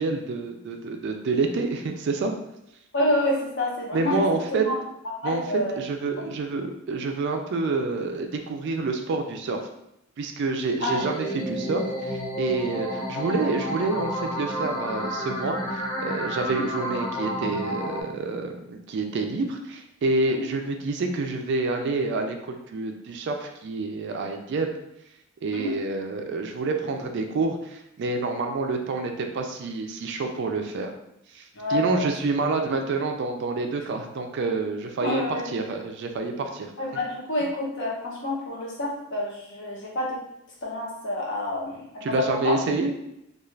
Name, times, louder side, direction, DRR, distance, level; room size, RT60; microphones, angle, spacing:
voice 1, 0.0-2.3 3.9-4.7 5.2-9.6 10.2-24.7 25.4-30.9 31.3-36.7 42.0-42.9, right 3 dB, 50° right, 4 dB, 0.3 m, -28 dB
voice 2, 2.9-4.2 4.5-4.8 5.2-5.8 10.8-11.0 16.4-16.6 20.3-20.4 25.5-25.7 31.5-32.1 35.0-35.5 36.8-40.2 40.6-42.5, left 1 dB, 55° left, -3 dB, 0.7 m, -28 dB
sound 1, 10.9-18.0, equal, 15° left, 0.4 m, -31 dB
2.3 x 2.3 x 3.1 m, 0.81 s
head